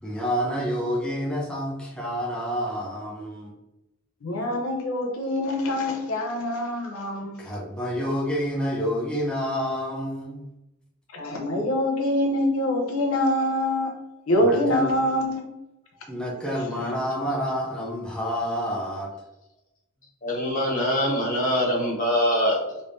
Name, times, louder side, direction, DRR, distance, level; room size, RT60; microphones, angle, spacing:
voice 1, 0.0-3.5 7.4-10.4 14.4-14.9 16.1-19.1, equal, 5° left, 0.5 m, -28 dB
voice 2, 4.2-7.4 11.1-13.9 14.3-15.5, left 1 dB, 80° left, 0.6 m, -25 dB
voice 3, 20.2-22.8, equal, 35° left, 1.1 m, -24 dB
3.3 x 3.1 x 2.6 m
head